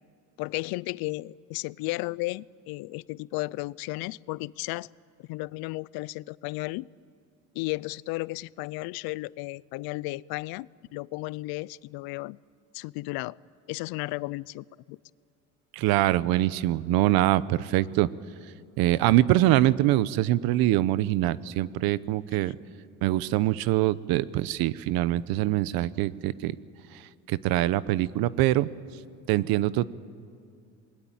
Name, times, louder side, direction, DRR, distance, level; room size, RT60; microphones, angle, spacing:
voice 1, 0.4-4.9 5.2-6.9 7.5-12.4 12.7-13.4 13.7-15.0 22.3-22.4, left 21 dB, 80° left, 22 dB, 0.6 m, -34 dB
voice 2, 15.7-18.1 18.8-22.6 23.0-26.5 27.3-28.7 29.3-29.9, right 15 dB, 80° right, 17 dB, 0.9 m, -24 dB
27.5 x 21.0 x 8.8 m, 2.3 s
cardioid pair, 135°, 36 cm